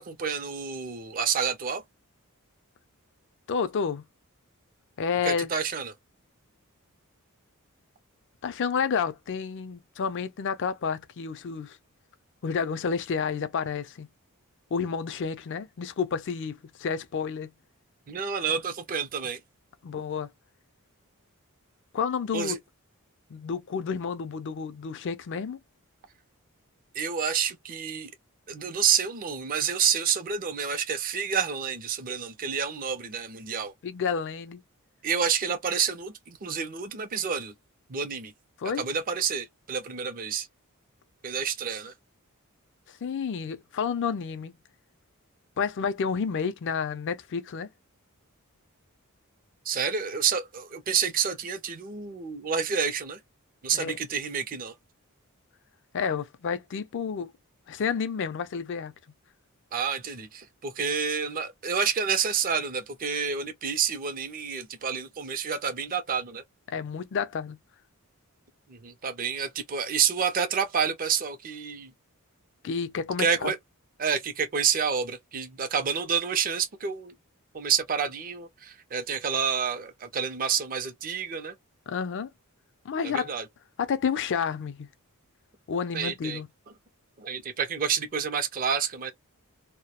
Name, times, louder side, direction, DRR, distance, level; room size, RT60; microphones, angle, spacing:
voice 1, 0.0-1.8 5.2-5.9 18.1-19.4 22.3-22.6 26.9-28.1 28.5-33.7 35.0-37.5 37.9-38.3 38.7-40.5 41.2-41.9 49.7-53.2 53.6-54.7 59.7-66.4 68.7-71.9 73.2-73.6 74.0-77.1 77.5-81.5 83.0-83.5 85.9-86.4 87.2-89.1, right 7 dB, 40° right, 0.5 m, -29 dB
voice 2, 3.5-4.1 5.0-5.5 8.4-11.8 12.4-14.1 14.7-17.5 19.8-20.3 21.9-22.6 23.3-25.6 33.8-34.6 38.6-38.8 43.0-44.5 45.6-47.7 53.7-54.0 55.9-57.3 57.7-58.9 66.7-67.6 72.6-73.5 81.9-82.3 82.8-83.3 83.8-84.9 85.7-86.5, left 6 dB, 55° left, 0.4 m, -30 dB
2.2 x 2.0 x 2.8 m
head